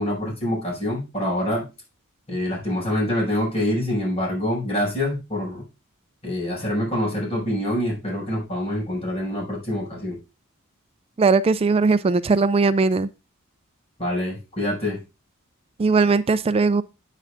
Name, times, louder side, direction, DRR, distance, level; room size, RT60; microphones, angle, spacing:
voice 1, 0.0-1.7 2.3-5.6 6.2-10.2 14.0-15.0, left 1 dB, 30° left, 5.9 m, -25 dB
voice 2, 11.2-13.1 15.8-16.8, right 4 dB, 25° right, 0.3 m, -19 dB
9.3 x 9.1 x 2.5 m
head